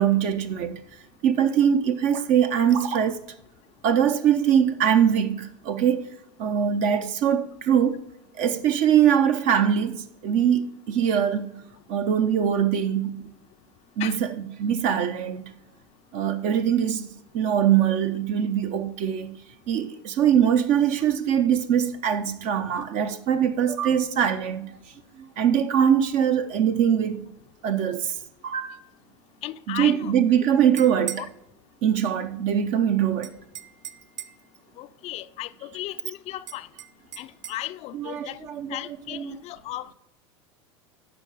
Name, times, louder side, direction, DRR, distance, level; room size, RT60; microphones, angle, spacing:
voice 1, 0.0-3.2 3.8-6.1 6.4-8.0 8.3-13.3 14.0-15.4 16.1-19.4 19.7-24.8 25.2-27.3 27.6-28.1 28.4-28.8 29.7-31.3 31.8-33.3 37.9-38.8 39.1-39.3, right 9 dB, 50° right, 0.7 m, -22 dB
voice 2, 29.4-30.1 30.4-30.6 31.2-31.3 34.8-36.7 37.2-38.4 38.7-39.9, left 15 dB, 45° left, 0.5 m, -35 dB
sound 1, 30.6-31.3 33.2-34.5 36.5-37.6, right 10 dB, 90° right, 0.6 m, -38 dB
12.0 x 4.6 x 4.9 m
hypercardioid pair, 95°, 16 cm